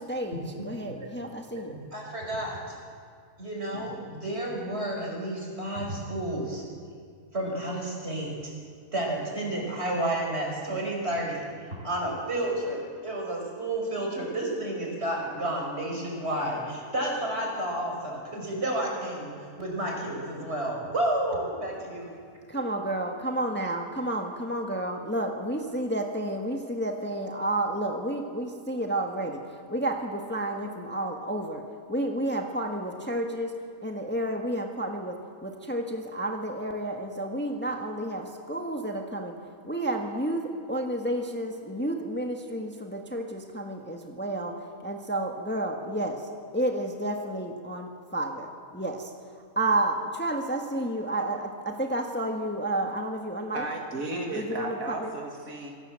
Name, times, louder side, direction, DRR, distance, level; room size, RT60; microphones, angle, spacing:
voice 1, 0.0-1.8 22.5-31.6 31.9-33.5 33.8-39.4 39.6-46.3 46.5-49.1 49.5-53.7 54.3-55.1, right 1 dB, 10° left, 2 dB, 1.5 m, -31 dB
voice 2, 1.7-2.7 3.4-6.6 7.3-8.5 8.9-11.4 11.7-22.1, right 1 dB, 50° right, 0 dB, 5.5 m, -31 dB
voice 3, 53.5-55.7, right 2 dB, 75° right, 1 dB, 2.6 m, -34 dB
27.0 x 17.5 x 7.7 m, 2.2 s
omnidirectional pair, 1.5 m